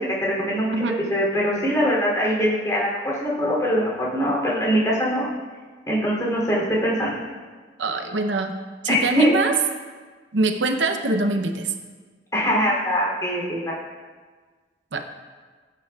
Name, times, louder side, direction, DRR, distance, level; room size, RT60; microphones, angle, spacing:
voice 1, 0.0-5.3 5.9-7.2 8.9-9.3 12.3-13.7, equal, 20° left, -4 dB, 2.9 m, -23 dB
voice 2, 7.8-8.5 8.8-9.5 10.3-11.7 14.9-15.0, right 2 dB, 75° right, 6 dB, 0.7 m, -23 dB
16.0 x 9.0 x 2.4 m, 1.4 s
head